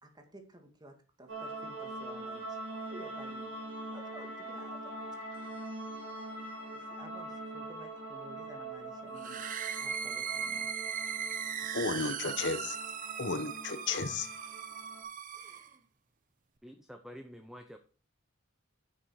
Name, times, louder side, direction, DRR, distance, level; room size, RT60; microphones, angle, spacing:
voice 1, 0.0-2.6 2.9-3.5 3.9-5.2 6.7-9.4 9.8-10.7 15.3-15.9, right 1 dB, 20° right, 2.0 m, -53 dB
sound 1, 1.3-15.0, right 2 dB, 70° right, 4.4 m, -43 dB
sound 2, 9.2-15.7, right 7 dB, 40° right, 0.8 m, -38 dB
voice 2, 11.7-12.8 13.2-14.3, left 4 dB, 60° left, 1.0 m, -33 dB
voice 3, 16.6-17.8, equal, ahead, 0.7 m, -48 dB
10.5 x 6.6 x 4.7 m
head